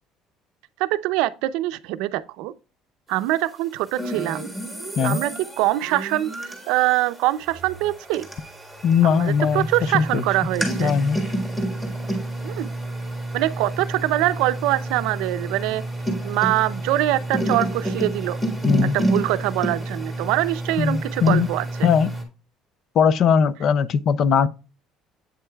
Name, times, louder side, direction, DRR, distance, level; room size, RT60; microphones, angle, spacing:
voice 1, 0.8-2.5 3.1-4.5 5.0-8.3 9.0-10.9 12.4-12.7 13.3-15.8 16.2-18.4 18.9-21.9, right 16 dB, 85° right, 0.5 m, -24 dB
sound 1, 3.9-22.2, right 1 dB, 5° left, 1.6 m, -29 dB
voice 2, 8.8-9.7 9.9-10.2 10.8-11.2 18.6-19.0 20.8-21.5 21.8-22.1 23.0-24.5, left 6 dB, 40° left, 0.4 m, -19 dB
8.0 x 7.6 x 2.3 m
cardioid pair, 160°, 0 cm